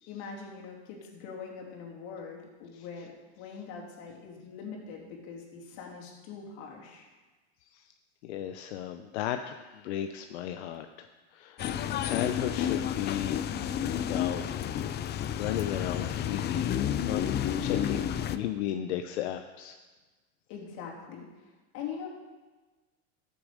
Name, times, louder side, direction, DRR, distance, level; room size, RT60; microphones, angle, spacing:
voice 1, 0.1-7.1 20.5-22.1, left 6 dB, 60° left, -1 dB, 3.1 m, -43 dB
voice 2, 7.6-7.9 8.2-11.6 12.0-13.5 14.0-14.5 15.0-16.7 17.0-17.2 17.6-19.8, left 11 dB, 80° left, 7 dB, 0.7 m, -35 dB
sound 1, 11.6-18.4, left 9 dB, 30° left, 0.5 m, -31 dB
14.0 x 7.1 x 5.0 m, 1.3 s
supercardioid pair, 115°, 33 cm